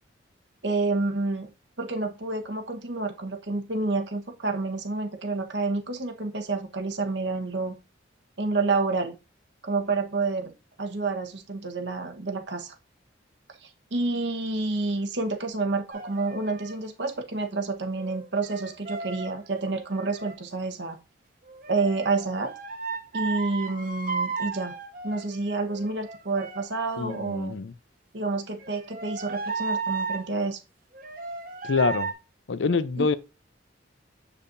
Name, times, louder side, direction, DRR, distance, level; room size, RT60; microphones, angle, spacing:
voice 1, 0.6-1.5 1.8-7.7 8.4-9.2 9.6-12.7 13.6-21.0 21.7-22.5 23.1-24.7 25.0-27.6 28.1-30.6 33.0-33.1, right 3 dB, 65° right, 1.2 m, -29 dB
sound 1, 15.9-16.8 18.0-20.3 21.4-27.4 28.6-30.3 30.9-32.1, right 4 dB, 45° right, 1.2 m, -35 dB
voice 2, 27.0-27.7 31.6-32.1 32.5-33.2, left 4 dB, 70° left, 0.5 m, -25 dB
7.1 x 6.5 x 2.6 m
head